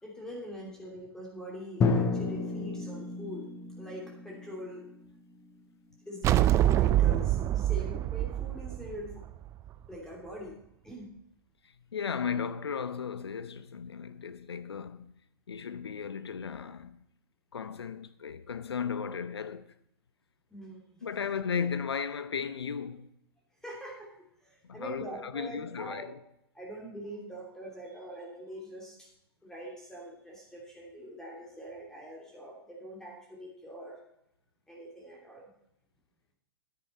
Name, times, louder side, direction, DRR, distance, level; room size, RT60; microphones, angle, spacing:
voice 1, 0.0-3.5 3.8-4.8 6.1-9.2 9.9-10.6 10.8-11.1 20.5-21.0 23.6-24.1 24.4-26.1 26.5-29.1 29.4-34.0 34.7-35.5, equal, 5° left, 2.8 m, -43 dB
Drum, 1.8-5.6, left 4 dB, 20° left, 1.3 m, -32 dB
sound 1, 6.2-9.7, right 13 dB, 20° right, 0.4 m, -25 dB
voice 2, 11.6-15.1 15.5-17.0 17.5-19.7 21.0-23.1 24.6-26.2, left 6 dB, 80° left, 0.8 m, -35 dB
9.9 x 9.8 x 4.3 m
hypercardioid pair, 115°, 13 cm